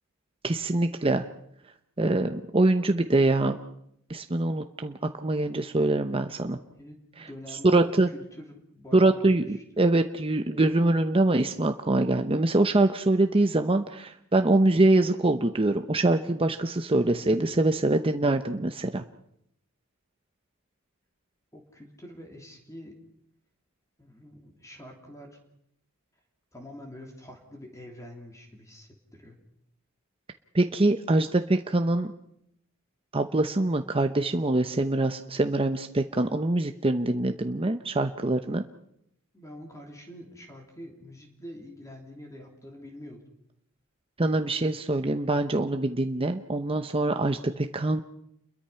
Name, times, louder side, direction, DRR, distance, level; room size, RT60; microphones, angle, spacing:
voice 1, 0.4-1.2 2.0-3.6 4.1-6.6 7.7-8.1 8.9-19.0 30.5-32.1 33.1-38.6 44.2-48.0, right 2 dB, 25° right, 6 dB, 0.8 m, -24 dB
voice 2, 6.8-9.8 21.5-23.0 24.0-25.4 26.5-29.4 39.3-43.2, equal, 15° left, 2 dB, 3.2 m, -46 dB
29.0 x 22.0 x 5.7 m, 0.75 s
head